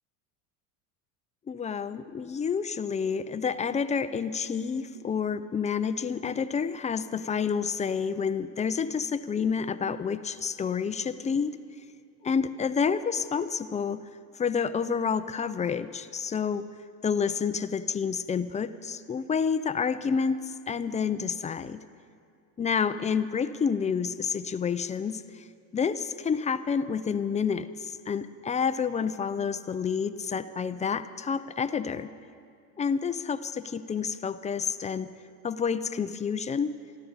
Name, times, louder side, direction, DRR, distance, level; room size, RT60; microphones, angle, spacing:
voice 1, 1.5-11.6 12.2-14.0 14.4-16.7 17.0-20.4 20.7-21.8 22.6-25.4 25.7-32.1 32.8-35.1 35.4-36.7, left 6 dB, 15° left, 12 dB, 0.4 m, -29 dB
27.5 x 12.5 x 4.0 m, 2.4 s
hypercardioid pair, 90°, 47 cm